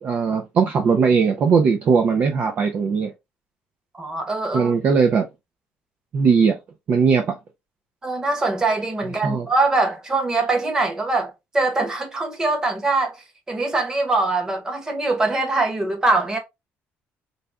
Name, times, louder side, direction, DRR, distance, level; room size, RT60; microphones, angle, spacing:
voice 1, 0.0-3.1 4.5-5.2 6.1-6.6 6.9-7.4 9.2-9.5, right 5 dB, 40° right, 0.5 m, -19 dB
voice 2, 3.9-4.7 8.0-13.2 13.5-16.4, right 3 dB, 15° right, 1.0 m, -22 dB
3.9 x 2.2 x 3.5 m
cardioid pair, 160°, 4 cm